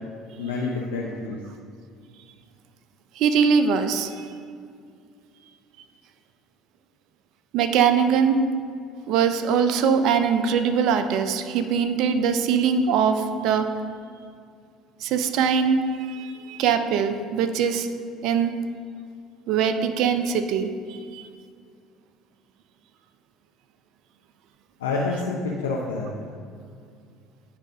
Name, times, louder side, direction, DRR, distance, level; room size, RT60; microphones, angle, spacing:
voice 1, 0.4-1.4 24.8-26.1, left 3 dB, 85° left, -2 dB, 0.5 m, -28 dB
voice 2, 3.2-4.3 7.5-8.4 9.1-13.7 15.0-17.9 18.2-18.6 19.5-21.3, right 6 dB, 65° right, 9 dB, 0.4 m, -22 dB
9.6 x 5.0 x 2.7 m, 2.2 s
hypercardioid pair, 65°, 0 cm